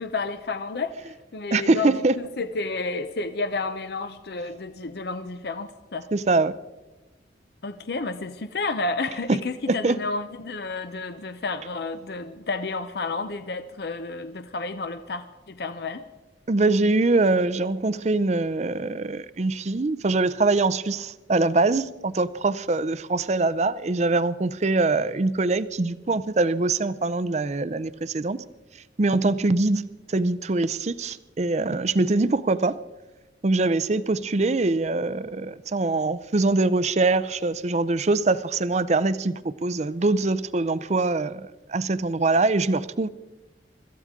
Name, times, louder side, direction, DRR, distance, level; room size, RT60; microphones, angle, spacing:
voice 1, 0.0-6.1 7.6-16.0, left 3 dB, 60° left, 9 dB, 0.7 m, -31 dB
voice 2, 1.5-2.1 6.1-6.5 9.3-9.4 9.7-10.0 16.5-28.4 29.0-29.8 30.1-32.8 33.4-43.1, right 3 dB, 40° right, 15 dB, 0.5 m, -23 dB
25.5 x 14.0 x 3.7 m, 1.1 s
head